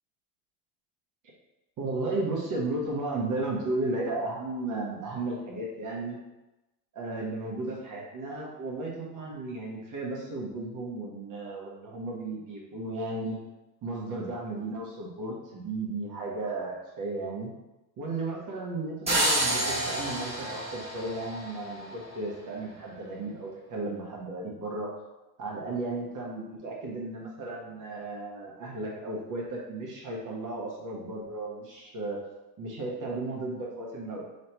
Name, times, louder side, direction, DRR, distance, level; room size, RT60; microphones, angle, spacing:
voice 1, 1.8-6.2 6.9-13.4 13.8-17.5 18.0-24.9 25.4-32.2 32.6-34.2, right 2 dB, 40° right, -3 dB, 1.0 m, -34 dB
sound 1, 19.1-21.9, right 1 dB, 10° right, 1.3 m, -29 dB
3.2 x 2.8 x 4.5 m, 1.0 s
supercardioid pair, 115°, 50 cm